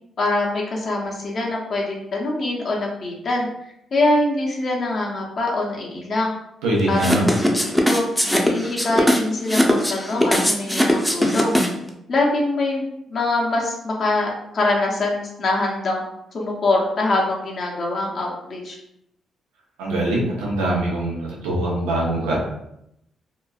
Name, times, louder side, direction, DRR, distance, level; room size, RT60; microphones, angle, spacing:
voice 1, 0.2-6.3 6.9-7.4 7.6-8.1 8.4-11.5 12.1-12.8 13.1-16.0 16.3-18.8, left 2 dB, 60° left, -2 dB, 0.6 m, -24 dB
voice 2, 6.6-7.3 19.8-22.4, right 1 dB, 90° right, -4 dB, 0.7 m, -23 dB
sound 1, 7.0-11.9, equal, 5° left, 0.6 m, -20 dB
2.9 x 2.2 x 2.3 m, 0.80 s
hypercardioid pair, 50°, 0 cm